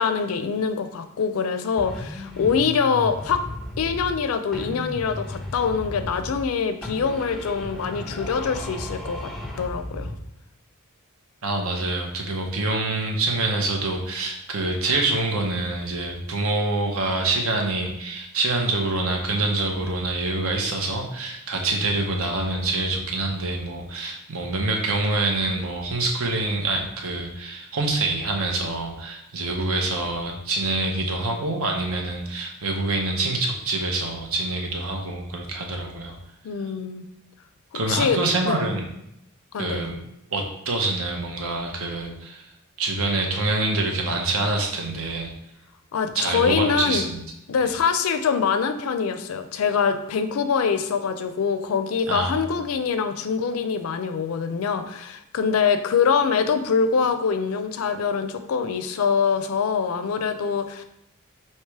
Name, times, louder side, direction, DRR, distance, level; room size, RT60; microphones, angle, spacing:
voice 1, 0.0-3.4 3.8-10.1 36.4-37.1 37.9-38.2 38.4-38.6 39.5-39.9 45.9-47.0 47.5-60.8, left 6 dB, 70° left, 9 dB, 0.4 m, -24 dB
sound 1, 1.8-4.2 4.5-6.5 6.8-10.3, left 1 dB, ahead, 0.5 m, -35 dB
voice 2, 11.4-36.2 37.7-38.8 39.6-40.0 40.3-42.5 42.8-45.3 46.1-47.2 52.1-52.5, right 2 dB, 70° right, 2 dB, 0.8 m, -26 dB
3.2 x 2.9 x 4.6 m, 0.79 s
head